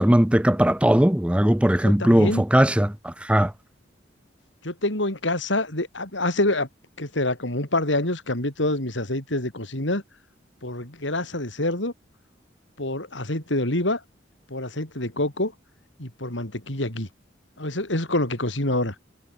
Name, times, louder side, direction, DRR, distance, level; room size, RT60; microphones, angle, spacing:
voice 1, 0.0-3.5, equal, 5° right, 0.6 m, -19 dB
voice 2, 1.8-2.4 4.6-6.7 7.0-10.0 10.6-11.9 12.8-14.0 14.5-15.5 16.0-17.1 17.6-18.9, left 1 dB, 80° left, 5.2 m, -26 dB
head